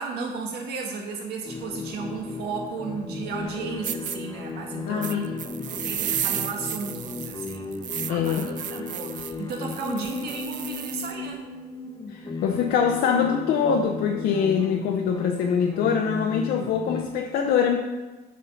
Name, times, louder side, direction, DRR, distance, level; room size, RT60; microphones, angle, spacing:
voice 1, 0.0-7.7 8.1-11.5, right 4 dB, 75° right, 1 dB, 1.8 m, -34 dB
sound 1, 1.4-17.0, left 3 dB, 25° left, 0.9 m, -35 dB
sound 2, 3.4-3.5 3.8-4.2 5.0-11.1, right 11 dB, 50° right, 0.4 m, -33 dB
voice 2, 4.9-5.3 8.1-8.5 12.1-17.8, left 7 dB, 75° left, 2 dB, 0.7 m, -24 dB
7.6 x 5.4 x 5.6 m, 1.2 s
cardioid pair, 110°, 17 cm